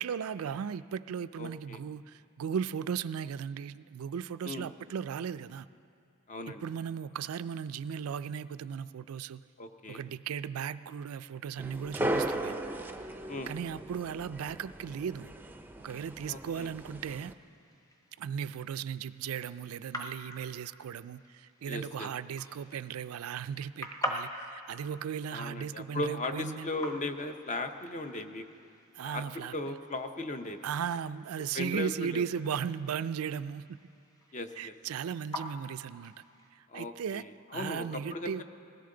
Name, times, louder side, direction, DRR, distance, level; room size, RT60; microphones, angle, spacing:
voice 1, 0.0-2.0 2.4-5.7 6.6-9.4 9.9-12.5 13.5-15.3 15.8-17.3 18.2-21.2 21.6-26.7 29.0-29.5 30.6-33.8 34.6-36.1 36.7-37.2 37.5-38.4, right 7 dB, 85° right, 14 dB, 0.4 m, -36 dB
voice 2, 1.4-1.8 4.4-4.7 6.3-6.7 9.6-10.1 13.3-13.5 16.2-16.7 21.7-22.1 25.3-28.4 29.0-29.2 29.5-30.7 31.5-32.2 34.3-34.7 36.7-38.4, left 2 dB, 35° left, 7 dB, 0.7 m, -37 dB
sound 1, 11.6-17.3, right 1 dB, 10° right, 0.5 m, -37 dB
sound 2, 17.0-36.5, equal, 15° left, 1.0 m, -46 dB
20.5 x 16.5 x 3.8 m, 2.4 s
head